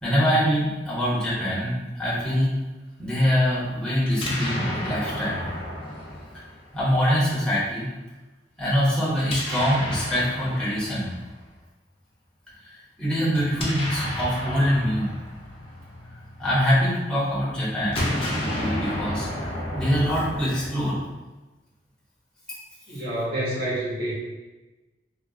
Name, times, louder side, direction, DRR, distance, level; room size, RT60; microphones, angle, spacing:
voice 1, 0.0-2.6 3.0-5.5 6.7-7.9 8.6-11.1 13.0-15.1 16.4-19.3 19.7-21.0, equal, 5° left, -9 dB, 0.9 m, -24 dB
Explosion, 4.0-7.1 9.1-11.4 13.3-16.7 17.8-21.1, left 1 dB, 35° left, 0.5 m, -32 dB
voice 2, 22.9-24.1, right 1 dB, 55° right, -9 dB, 1.4 m, -28 dB
3.6 x 2.3 x 2.3 m, 1.1 s
head